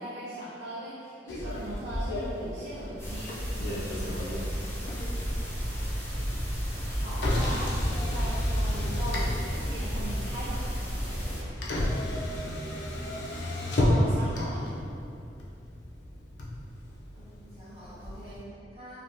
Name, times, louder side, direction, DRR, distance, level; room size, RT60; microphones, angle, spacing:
voice 1, 0.0-3.4 6.8-10.7 13.7-14.7, right 1 dB, 65° right, -7 dB, 0.3 m, -39 dB
Motor vehicle (road), 1.3-18.4, left 1 dB, 85° left, 0.5 m, -33 dB
sound 1, 3.0-11.4, equal, 10° left, 0.5 m, -32 dB
voice 2, 3.7-4.5 11.0-11.3 17.1-19.0, right 1 dB, 35° right, -11 dB, 1.0 m, -48 dB
3.1 x 2.1 x 2.6 m, 2.7 s
head